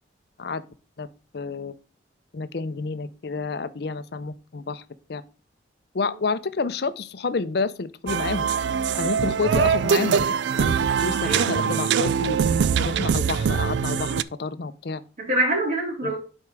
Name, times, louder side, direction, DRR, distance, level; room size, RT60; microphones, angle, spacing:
voice 1, 1.3-1.7 2.3-4.8 5.1-5.2 5.9-8.5 8.9-10.3 10.5-10.7 11.0-12.5 12.8-15.0, left 4 dB, 60° left, 0.6 m, -29 dB
sound 1, 8.1-14.2, right 7 dB, 70° right, 0.4 m, -23 dB
voice 2, 11.2-11.8 15.2-16.2, right 1 dB, 40° right, 3.4 m, -26 dB
7.3 x 4.5 x 4.6 m
head